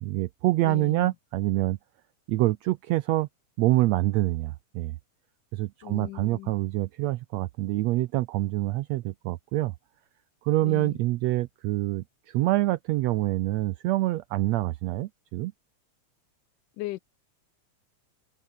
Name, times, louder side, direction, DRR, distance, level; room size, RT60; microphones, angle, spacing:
voice 1, 0.0-1.8 2.3-3.3 3.6-5.0 5.5-9.7 10.4-15.5, right 17 dB, 80° right, 1.6 m, -26 dB
voice 2, 0.6-1.1 5.8-6.5 10.6-11.0 16.8-17.0, left 18 dB, 90° left, 2.3 m, -38 dB
omnidirectional pair, 3.6 m